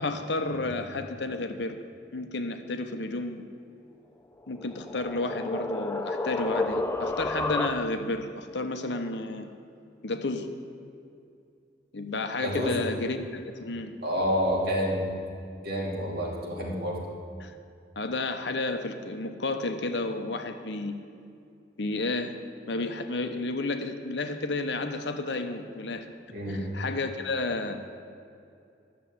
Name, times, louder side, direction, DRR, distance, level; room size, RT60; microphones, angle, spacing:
voice 1, 0.0-1.8 2.1-3.5 4.5-9.5 10.0-10.5 11.9-13.9 17.4-17.6 18.0-20.9 21.8-22.4 22.7-26.1 26.5-27.8, left 2 dB, 70° left, 7 dB, 0.9 m, -31 dB
sound 1, 4.4-8.2, left 2 dB, 15° left, 0.4 m, -31 dB
voice 2, 12.4-12.7 14.0-15.0 15.6-17.0 26.3-26.7, equal, 55° right, -4 dB, 2.9 m, -28 dB
11.5 x 6.9 x 8.5 m, 2.5 s
head